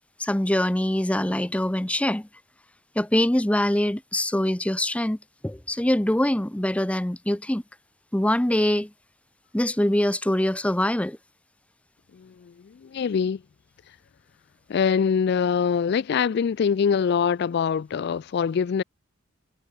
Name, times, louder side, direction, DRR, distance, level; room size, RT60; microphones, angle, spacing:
voice 1, 0.2-2.3 3.0-5.2 5.4-7.6 8.1-8.9 9.5-11.2, left 1 dB, 5° left, 0.6 m, -23 dB
voice 2, 12.1-13.4 14.7-18.8, left 6 dB, 55° left, 0.3 m, -24 dB
head